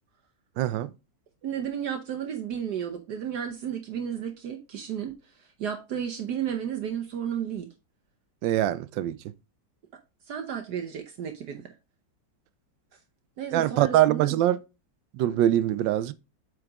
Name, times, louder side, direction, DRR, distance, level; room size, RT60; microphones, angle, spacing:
voice 1, 0.6-0.9 8.4-9.2 13.5-14.6 15.1-16.1, right 13 dB, 90° right, 1.3 m, -23 dB
voice 2, 1.4-7.7 10.3-11.7 13.4-14.4, right 8 dB, 65° right, 1.3 m, -33 dB
8.0 x 4.9 x 3.5 m
omnidirectional pair, 1.9 m